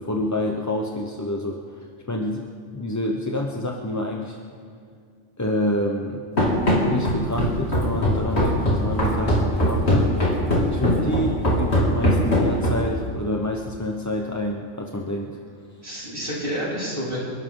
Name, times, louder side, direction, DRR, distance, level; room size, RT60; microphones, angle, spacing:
voice 1, 0.0-2.5 2.7-4.4 5.4-6.2 6.8-10.1 10.7-15.4, left 1 dB, 15° left, 1 dB, 0.8 m, -28 dB
Run, 6.4-13.0, equal, 60° left, 3.1 m, -21 dB
voice 2, 10.8-11.1 15.8-17.2, equal, 45° right, -8 dB, 5.6 m, -30 dB
27.5 x 12.5 x 3.9 m, 2.2 s
omnidirectional pair, 1.3 m